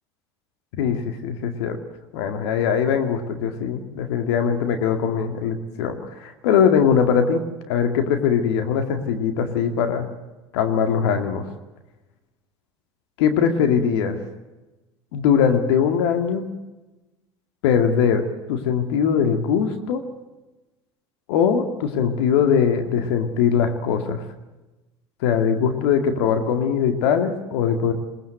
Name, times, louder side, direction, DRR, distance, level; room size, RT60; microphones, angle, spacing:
voice 1, 0.8-1.8 2.1-7.4 7.7-10.1 10.5-11.5 13.2-14.2 15.1-16.5 17.6-18.2 18.5-20.0 21.3-24.2 25.2-27.9, left 7 dB, 70° left, 6 dB, 2.2 m, -21 dB
21.5 x 20.0 x 7.9 m, 1.1 s
hypercardioid pair, 70°, 14 cm